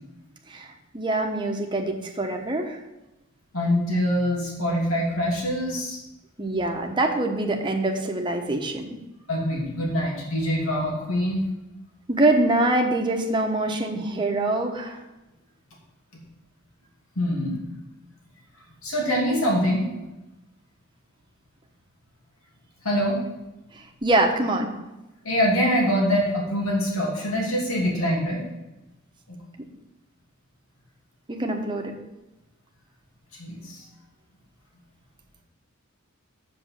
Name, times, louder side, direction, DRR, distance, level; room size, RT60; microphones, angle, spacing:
voice 1, 0.5-2.8 6.4-9.0 12.1-15.0 23.7-24.7 31.3-31.9, right 2 dB, 25° right, 2 dB, 1.1 m, -24 dB
voice 2, 3.5-6.0 9.3-11.4 16.1-16.2 17.2-17.6 18.8-19.9 22.8-23.2 25.2-28.4 29.3-29.4 33.4-33.8, equal, 85° left, -3 dB, 2.8 m, -24 dB
7.6 x 5.3 x 7.5 m, 0.98 s
head